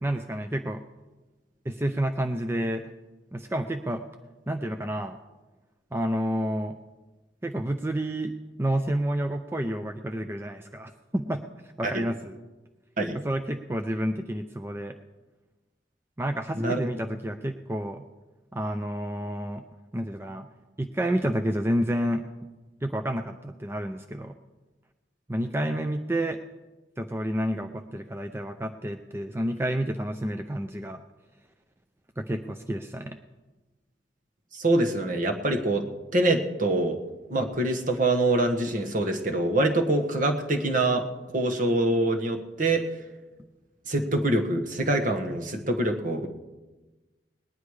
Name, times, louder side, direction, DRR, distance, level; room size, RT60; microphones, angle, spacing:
voice 1, 0.0-0.8 1.7-2.9 3.3-4.1 4.5-5.2 5.9-6.8 7.4-11.4 11.8-12.4 13.2-14.9 16.2-18.0 18.5-19.6 19.9-20.5 20.8-22.3 22.8-24.3 25.3-26.4 27.0-31.0 32.2-33.2, right 1 dB, 15° right, 6 dB, 0.5 m, -29 dB
voice 2, 34.5-35.8 36.1-37.0 37.3-41.0 41.3-42.8 43.9-46.3, right 2 dB, 45° right, 4 dB, 1.4 m, -25 dB
19.5 x 10.0 x 4.8 m, 1.2 s
head